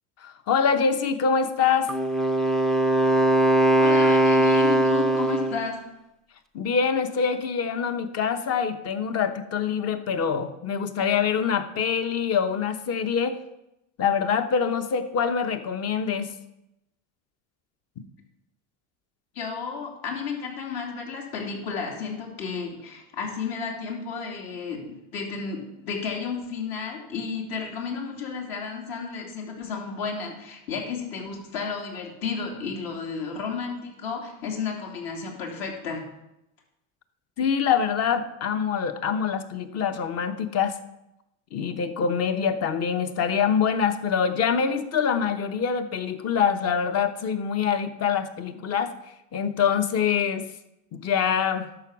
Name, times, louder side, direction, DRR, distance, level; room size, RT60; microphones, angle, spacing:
voice 1, 0.2-1.9 6.5-13.4 14.0-16.3 18.0-18.1 37.4-40.8 41.5-48.9 49.3-50.5 50.9-51.7, left 6 dB, 40° left, 9 dB, 1.0 m, -25 dB
Wind instrument woodwind instrument, 1.9-5.7, right 1 dB, ahead, 0.5 m, -20 dB
voice 2, 3.7-5.8 19.3-36.0, left 5 dB, 65° left, 0 dB, 3.1 m, -32 dB
11.0 x 7.0 x 6.0 m, 0.88 s
supercardioid pair, 120°, 39 cm